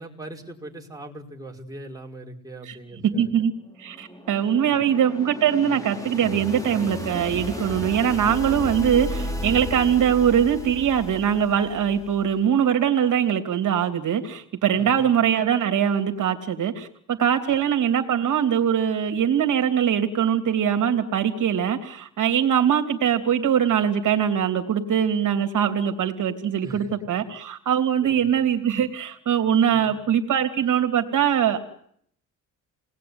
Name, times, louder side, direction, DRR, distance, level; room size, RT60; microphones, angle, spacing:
voice 1, 0.0-3.3 4.5-4.9 14.7-15.1 26.6-26.9 28.0-28.3 29.7-29.9, right 1 dB, 10° right, 0 dB, 5.0 m, -41 dB
voice 2, 3.1-3.5 3.8-31.6, right 9 dB, 65° right, 6 dB, 3.0 m, -22 dB
sound 1, 3.4-12.3, left 1 dB, 10° left, 5.7 m, -34 dB
28.5 x 20.0 x 9.7 m, 0.69 s
cardioid pair, 110°, 33 cm